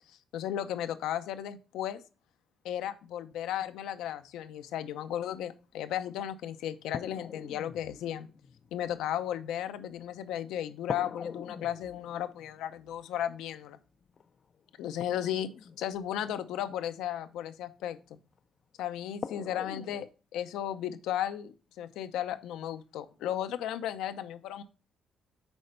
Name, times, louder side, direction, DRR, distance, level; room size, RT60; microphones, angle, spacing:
voice 1, 0.3-2.0 2.6-8.3 8.7-13.8 14.8-15.5 15.8-18.2 18.8-24.6, left 11 dB, 90° left, 10 dB, 0.6 m, -35 dB
sound 1, 6.1-6.2 6.9-10.3 10.9-17.0 18.4-18.5 19.2-20.1, left 6 dB, 50° left, 0.4 m, -44 dB
6.2 x 4.3 x 5.2 m, 0.36 s
cardioid pair, 90°, 0 cm